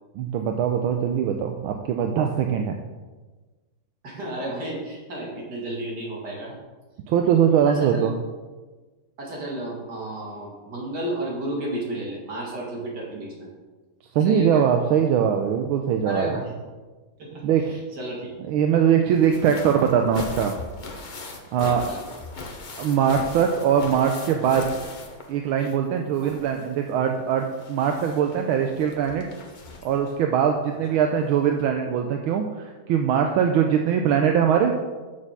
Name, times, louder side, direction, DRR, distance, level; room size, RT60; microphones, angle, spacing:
voice 1, 0.1-2.8 7.1-8.1 14.1-16.3 17.4-17.8 18.4-20.6 21.5-21.9 22.8-24.7 25.3-29.2 29.8-34.7, right 8 dB, 80° right, 4 dB, 1.5 m, -22 dB
voice 2, 4.0-6.6 7.7-8.0 9.2-13.5 14.2-14.6 16.0-16.7 17.2-18.3 21.6-22.0 26.2-26.3 30.9-31.0, right 1 dB, 50° right, -3 dB, 2.9 m, -32 dB
sound 1, 19.1-25.9 26.1-30.1 31.2-31.3 31.6-31.7, left 3 dB, 60° left, 0.5 m, -39 dB
7.0 x 6.6 x 6.7 m, 1.3 s
omnidirectional pair, 2.3 m